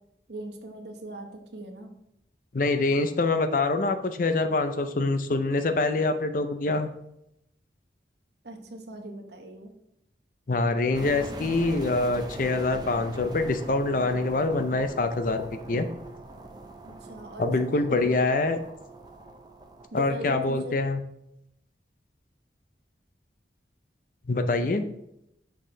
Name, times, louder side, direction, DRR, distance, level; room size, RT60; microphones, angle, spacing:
voice 1, 0.3-1.9 8.4-9.7 16.8-18.1 19.9-20.7, right 1 dB, 70° right, 4 dB, 0.9 m, -39 dB
voice 2, 2.5-6.9 10.5-15.9 17.4-18.6 19.9-21.0 24.3-24.9, left 3 dB, 50° left, 8 dB, 0.5 m, -25 dB
sound 1, 10.9-19.9, right 2 dB, 25° right, 0.6 m, -42 dB
6.4 x 5.9 x 3.2 m, 0.80 s
head